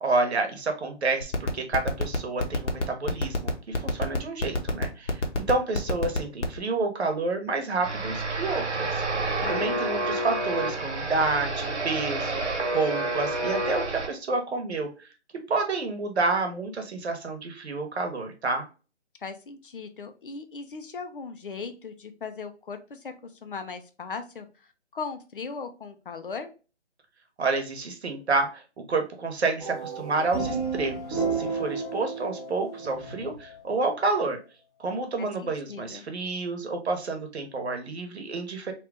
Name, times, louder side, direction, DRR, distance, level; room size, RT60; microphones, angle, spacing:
voice 1, 0.0-15.1 15.5-18.6 27.4-34.4 34.8-38.7, right 3 dB, 65° right, 5 dB, 1.0 m, -29 dB
sound 1, 1.2-6.6, left 2 dB, 80° left, 1.0 m, -25 dB
sound 2, 7.8-14.1, right 2 dB, 90° right, 1.2 m, -29 dB
voice 2, 9.4-9.9 19.2-24.5 24.9-26.5 35.2-36.1, left 5 dB, 50° left, 7 dB, 0.5 m, -38 dB
sound 3, 29.6-33.9, right 4 dB, 15° right, 0.7 m, -32 dB
2.9 x 2.4 x 3.2 m, 0.33 s
figure-of-eight pair, 155°, 35 cm